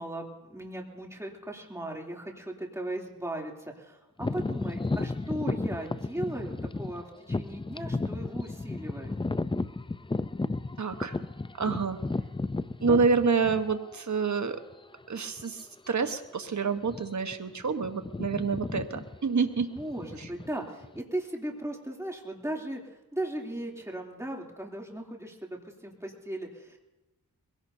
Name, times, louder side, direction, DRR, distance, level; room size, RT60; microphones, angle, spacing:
voice 1, 0.0-9.2 12.8-13.0 19.7-22.8 23.1-26.8, right 1 dB, 10° right, -1 dB, 3.0 m, -37 dB
sound 1, 4.2-14.0 14.6-14.7 15.4-15.6 15.9-16.1 16.8-17.3 17.6-21.0, left 3 dB, 15° left, 0.5 m, -33 dB
voice 2, 10.8-11.2 11.6-12.0 12.8-14.6 15.1-19.7, right 5 dB, 50° right, 8 dB, 1.2 m, -28 dB
22.0 x 17.0 x 2.8 m, 1.0 s
cardioid pair, 45°, 36 cm